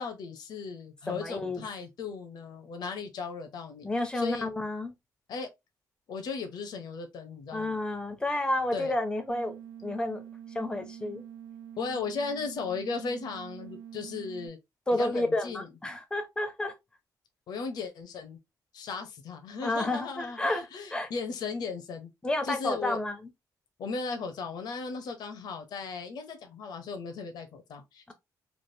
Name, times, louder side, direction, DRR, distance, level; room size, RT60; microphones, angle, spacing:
voice 1, 0.0-3.9 4.1-4.5 5.3-5.5 6.1-7.8 8.7-8.9 11.8-14.6 14.9-15.7 17.5-18.4 18.7-22.1 22.4-23.0 23.8-28.1, left 4 dB, 70° left, 0.8 m, -36 dB
voice 2, 1.1-1.6 3.8-4.9 7.5-9.5 9.8-10.2 10.5-11.2 14.9-16.7 19.6-21.1 22.2-23.2, left 1 dB, 10° left, 0.7 m, -30 dB
sound 1, 9.3-14.5, right 9 dB, 90° right, 0.5 m, -45 dB
3.3 x 2.4 x 2.7 m
cardioid pair, 145°, 7 cm